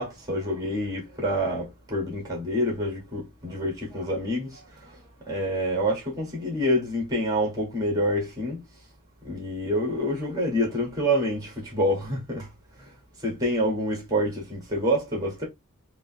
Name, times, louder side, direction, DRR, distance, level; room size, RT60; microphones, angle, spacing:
voice 1, 0.0-5.0 5.2-8.6 9.2-12.5 13.2-15.5, equal, 20° right, 1.7 m, -27 dB
5.1 x 2.1 x 2.6 m
head